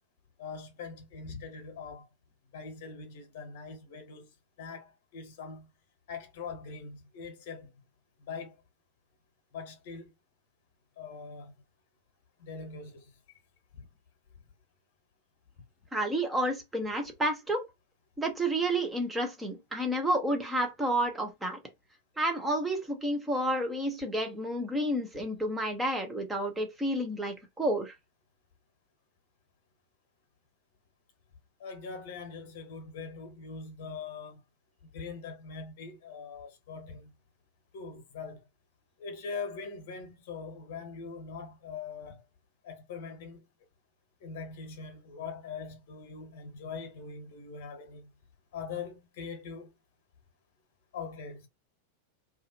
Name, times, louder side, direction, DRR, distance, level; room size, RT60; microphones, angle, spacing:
voice 1, 0.4-2.1 2.5-4.3 4.6-5.7 6.1-7.7 8.2-8.6 9.5-10.1 11.0-11.5 12.4-13.1 13.7-13.9 31.6-34.4 34.9-37.1 37.7-38.5 39.0-42.2 42.6-43.4 44.2-48.1 48.5-49.7 50.9-51.5, left 5 dB, 50° left, 1.0 m, -42 dB
voice 2, 15.9-17.7 18.2-21.6 22.2-27.9, right 1 dB, 10° right, 0.7 m, -30 dB
2.4 x 2.3 x 2.8 m
figure-of-eight pair, 90°, 0 cm